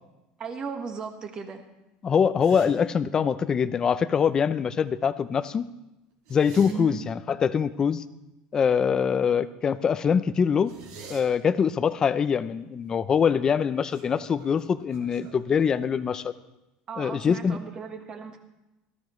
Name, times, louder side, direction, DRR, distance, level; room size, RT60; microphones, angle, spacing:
voice 1, 0.4-1.6 6.7-7.0 16.9-18.4, right 5 dB, 30° right, 5 dB, 1.5 m, -36 dB
voice 2, 2.0-5.7 6.3-8.0 8.5-10.7 11.1-16.3 17.0-17.6, left 7 dB, 25° left, 13 dB, 0.5 m, -24 dB
sound 1, 2.4-2.7 6.1-6.7 10.7-11.2 13.3-13.6 13.9-16.0, right 4 dB, 70° right, 3.4 m, -45 dB
17.5 x 14.0 x 3.2 m, 0.97 s
cardioid pair, 155°, 3 cm